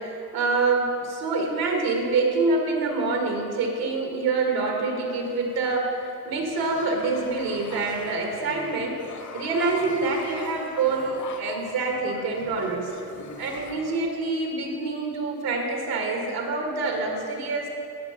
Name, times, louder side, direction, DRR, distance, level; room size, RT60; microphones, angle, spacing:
voice 1, 0.0-9.0 9.3-12.9 13.4-17.7, right 3 dB, 85° right, 1 dB, 2.1 m, -26 dB
sound 1, 5.1-14.0, left 4 dB, 55° left, 1.0 m, -42 dB
12.0 x 5.8 x 6.8 m, 2.6 s
cardioid pair, 105°, 36 cm